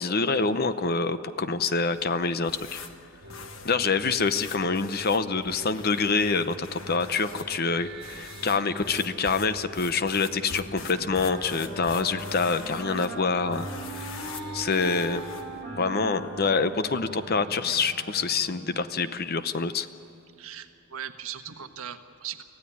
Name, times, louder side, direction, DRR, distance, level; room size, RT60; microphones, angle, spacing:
voice 1, 0.0-2.8 3.6-14.2 14.5-15.2 15.8-19.9, left 4 dB, 45° left, 12 dB, 0.8 m, -26 dB
sound 1, 1.8-15.6, left 5 dB, 65° left, 1.4 m, -45 dB
sound 2, 3.2-18.7, right 1 dB, 50° right, 2.0 m, -44 dB
Wind instrument woodwind instrument, 10.6-18.7, right 2 dB, 10° left, 6.1 m, -41 dB
voice 2, 20.4-22.4, right 9 dB, 75° right, 7 dB, 1.4 m, -39 dB
25.0 x 16.0 x 9.9 m, 2.9 s
head